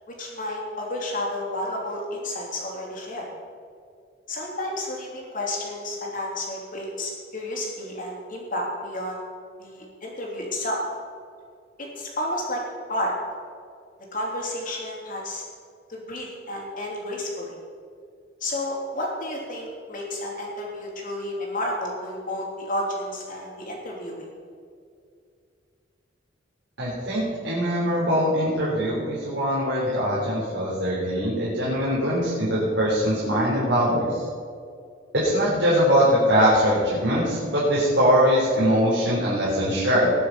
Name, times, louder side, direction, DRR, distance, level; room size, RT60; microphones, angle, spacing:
voice 1, 0.1-3.3 4.3-9.2 9.6-10.8 11.8-12.6 12.9-13.1 14.1-15.4 15.9-17.5 18.4-24.3, left 1 dB, 50° left, -1 dB, 3.1 m, -31 dB
voice 2, 26.8-34.2 35.1-40.1, equal, 70° right, -8 dB, 3.7 m, -22 dB
19.5 x 6.8 x 5.5 m, 2.2 s
head